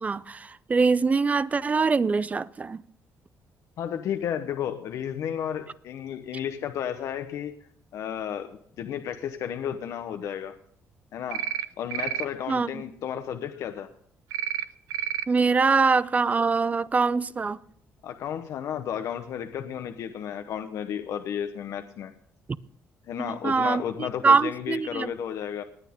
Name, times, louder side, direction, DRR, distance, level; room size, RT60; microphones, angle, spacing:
voice 1, 0.0-2.8 12.5-12.8 15.3-17.6 23.2-25.1, right 4 dB, 25° right, 0.5 m, -23 dB
voice 2, 3.8-7.5 7.9-8.5 8.8-10.6 11.1-11.5 11.8-13.9 18.0-22.1 23.1-25.6, left 9 dB, 70° left, 0.9 m, -33 dB
sound 1, 11.3-11.7 11.9-12.3 14.3-14.6 14.9-15.2, right 11 dB, 90° right, 0.6 m, -29 dB
19.5 x 9.3 x 3.7 m
cardioid pair, 105°, 6 cm